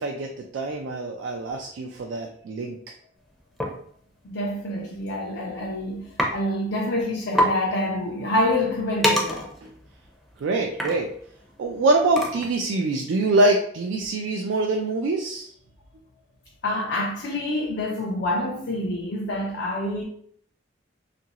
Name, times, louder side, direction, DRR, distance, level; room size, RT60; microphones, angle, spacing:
voice 1, 0.0-2.8 9.6-9.7 10.4-11.1 11.6-15.5, right 2 dB, 75° right, 0.3 m, -24 dB
sound 1, 3.6-3.8 4.8-5.0 5.4-5.7 6.2-6.3 6.7-6.8 7.0-7.1 7.3-7.6 8.0-12.7, equal, ahead, 0.5 m, -27 dB
voice 2, 4.2-6.1 6.3-9.5 16.6-20.0, left 1 dB, 65° left, 0.5 m, -27 dB
2.7 x 2.5 x 2.8 m
head